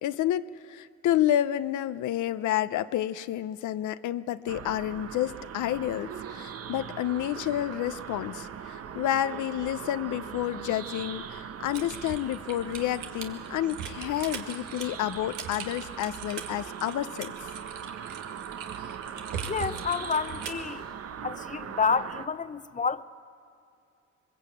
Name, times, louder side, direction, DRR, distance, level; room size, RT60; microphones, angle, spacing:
voice 1, 0.0-17.3, left 12 dB, 75° left, 13 dB, 0.7 m, -30 dB
sound 1, 4.5-22.3, right 8 dB, 50° right, 1.0 m, -40 dB
Typing, 11.7-20.7, right 7 dB, 90° right, 1.8 m, -40 dB
voice 2, 19.4-20.9 21.2-23.0, left 5 dB, 25° left, 13 dB, 0.8 m, -29 dB
23.0 x 20.5 x 8.5 m, 2.4 s
cardioid pair, 90°, 30 cm